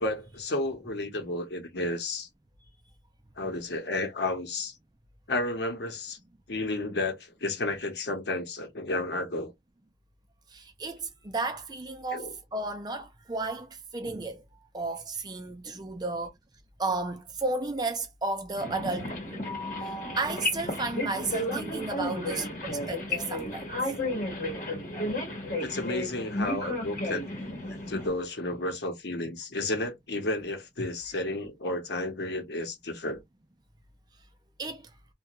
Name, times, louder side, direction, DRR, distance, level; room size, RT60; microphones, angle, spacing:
voice 1, 0.0-2.3 3.4-4.8 5.3-6.2 6.5-9.5 12.1-12.3 25.6-27.3 27.9-33.2, left 2 dB, 70° left, 0.9 m, -32 dB
voice 2, 10.5-14.4 14.7-16.3 16.8-19.4 19.8-23.7 34.6-34.9, right 3 dB, 25° right, 0.5 m, -33 dB
sound 1, 18.5-28.1, left 1 dB, 50° left, 1.2 m, -33 dB
2.5 x 2.3 x 2.9 m
head